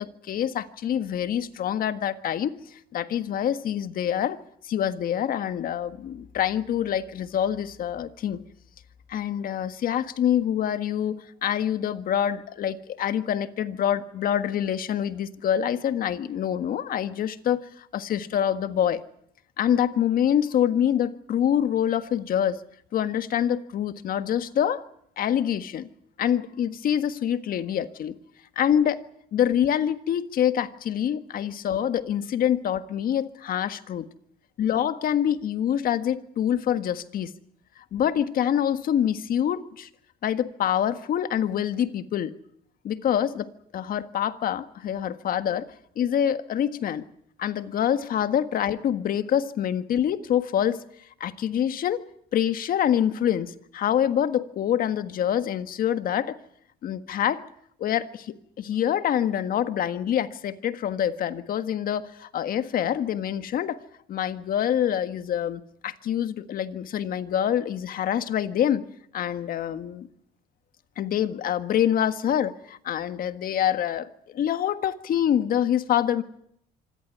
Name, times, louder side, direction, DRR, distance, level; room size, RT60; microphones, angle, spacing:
voice 1, 0.0-2.5 2.9-4.4 4.6-8.4 9.1-19.0 19.6-22.6 22.9-24.8 25.2-25.9 26.2-28.1 28.5-29.0 29.3-34.0 34.6-37.3 37.9-39.9 40.2-42.3 42.8-45.7 46.0-47.0 47.4-50.8 51.2-52.0 52.3-56.3 56.8-57.4 57.8-63.8 64.1-68.9 69.1-70.1 71.0-74.1 74.3-76.2, left 10 dB, 60° left, 1.5 m, -26 dB
25.5 x 15.0 x 10.0 m
cardioid pair, 110°, 17 cm